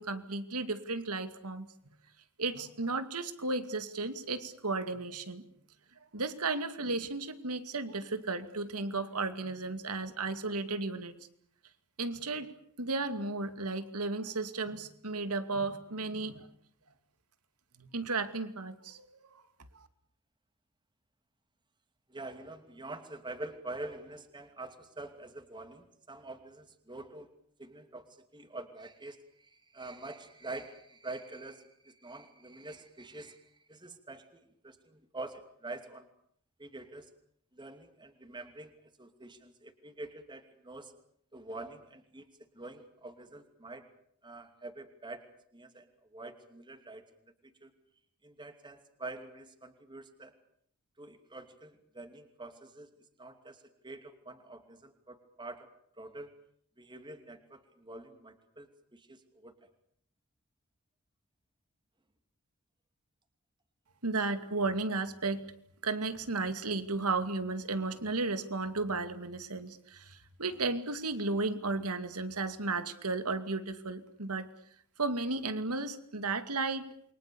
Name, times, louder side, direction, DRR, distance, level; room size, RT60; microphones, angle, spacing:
voice 1, 0.0-1.7 2.4-5.4 6.1-11.1 12.0-12.5 12.8-16.5 17.8-19.4 64.0-65.4 65.8-74.5 75.0-76.9, right 3 dB, 90° right, 10 dB, 2.4 m, -34 dB
voice 2, 22.1-27.3 27.6-36.1 36.6-37.1 37.5-40.9 41.3-42.3 42.5-43.9 44.2-45.3 45.5-47.0 47.4-47.7 48.2-50.3 51.0-52.9 53.2-55.7 56.0-56.3 56.8-59.5, right 2 dB, 20° right, 7 dB, 2.6 m, -46 dB
28.5 x 24.0 x 7.0 m, 0.66 s
head